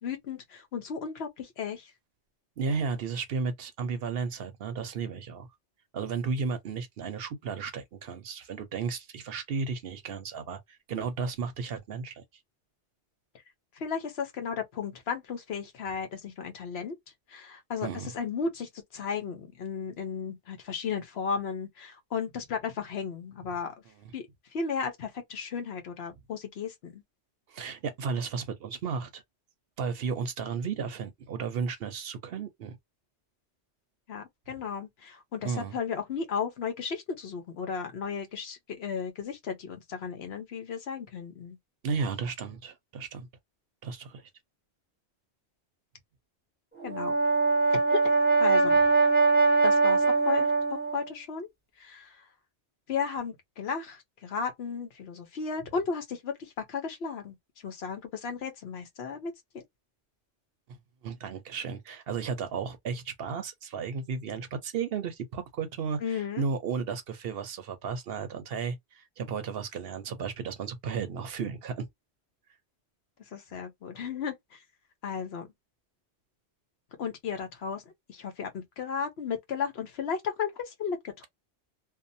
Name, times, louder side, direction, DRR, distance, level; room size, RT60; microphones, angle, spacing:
voice 1, 0.0-1.9 13.8-16.9 17.3-17.9 18.1-23.7 24.1-24.2 24.5-27.0 34.1-41.6 46.8-47.1 47.7-48.0 48.4-48.8 49.6-50.5 50.9-51.5 51.8-52.1 52.9-57.4 57.6-59.6 66.0-66.4 73.3-74.3 75.0-75.5 77.0-77.8 78.1-81.3, left 6 dB, 65° left, 1.0 m, -34 dB
voice 2, 2.6-5.5 5.9-12.2 17.8-18.1 24.0-24.1 27.5-29.2 29.8-32.8 35.4-35.8 41.8-43.3 43.8-44.3 60.7-60.8 61.0-71.9, right 5 dB, 65° right, 0.8 m, -34 dB
Brass instrument, 46.8-51.0, right 4 dB, 10° right, 0.9 m, -22 dB
2.8 x 2.1 x 2.5 m
omnidirectional pair, 1.2 m